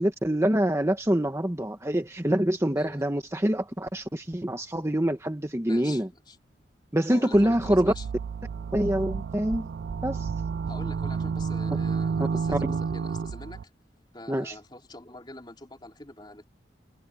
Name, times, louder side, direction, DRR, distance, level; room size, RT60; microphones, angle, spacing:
voice 1, 0.0-6.1 6.9-7.9 8.7-9.7 10.0-10.3 12.5-12.6 14.3-14.6, right 1 dB, 15° right, 1.1 m, -25 dB
voice 2, 5.7-6.4 7.1-8.1 10.6-13.7 14.1-16.4, left 2 dB, 25° left, 3.4 m, -44 dB
sound 1, 7.3-13.6, right 5 dB, 60° right, 0.3 m, -31 dB
head